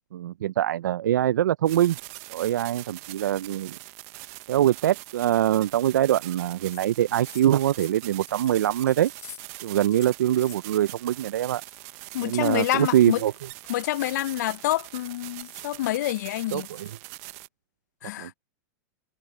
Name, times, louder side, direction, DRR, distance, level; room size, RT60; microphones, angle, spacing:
voice 1, 0.0-2.0 2.3-3.8 4.5-9.1 9.6-11.6 12.2-13.3 16.5-16.9 18.2-18.3, right 12 dB, 85° right, 0.4 m, -23 dB
sound 1, 1.7-17.5, right 25 dB, 50° right, 0.8 m, -42 dB
sound 2, 6.3-6.4 6.6-6.9 7.2-9.7 9.9-11.0 11.4-11.8 12.2-17.0, left 12 dB, 30° left, 2.2 m, -50 dB
voice 2, 12.1-13.2 13.7-16.7 18.0-18.3, left 15 dB, 65° left, 0.6 m, -27 dB
hypercardioid pair, 120°, 10 cm